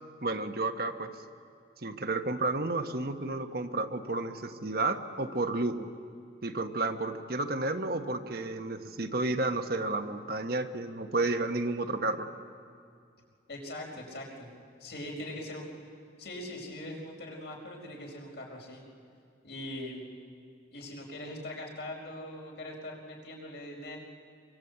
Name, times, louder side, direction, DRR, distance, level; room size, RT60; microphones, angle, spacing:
voice 1, 0.2-1.1 1.8-5.9 6.4-12.3, right 2 dB, 55° right, 6 dB, 1.2 m, -31 dB
voice 2, 13.5-14.5 14.8-15.6 16.2-18.8 19.4-20.0 20.7-24.0, left 1 dB, 65° left, 0 dB, 5.2 m, -41 dB
25.0 x 24.5 x 8.2 m, 2.3 s
head